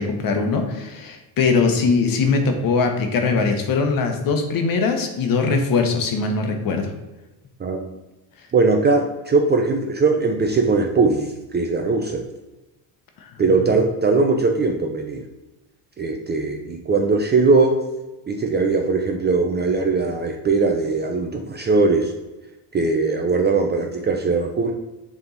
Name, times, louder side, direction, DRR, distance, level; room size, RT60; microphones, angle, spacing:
voice 1, 0.0-6.9 13.2-13.4, left 4 dB, 45° left, 4 dB, 1.2 m, -21 dB
voice 2, 8.5-12.3 13.4-15.2 16.0-17.8 18.3-22.1 22.7-24.7, right 3 dB, 25° right, 3 dB, 0.5 m, -20 dB
7.0 x 3.6 x 3.9 m, 1.0 s
cardioid pair, 135°, 45 cm